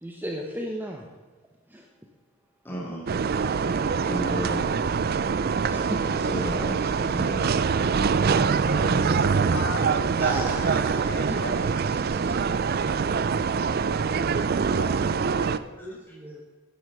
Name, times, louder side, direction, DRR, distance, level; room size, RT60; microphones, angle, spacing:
voice 1, 0.0-1.1 1.7-1.9 5.7-6.0 10.2-12.3 15.8-16.4, right 1 dB, 10° right, 1 dB, 0.8 m, -37 dB
voice 2, 2.6-3.1 4.0-4.7 6.0-7.5 7.8-9.6 15.8-16.2, equal, 10° left, -3 dB, 2.5 m, -35 dB
sound 1, 3.1-15.6, right 5 dB, 45° right, 0.3 m, -24 dB
sound 2, 3.6-14.9, left 2 dB, 90° left, 1.9 m, -48 dB
voice 3, 9.4-10.6 11.0-11.6 14.5-16.0, left 3 dB, 50° left, 5 dB, 1.0 m, -39 dB
9.9 x 7.9 x 6.7 m, 1.3 s
head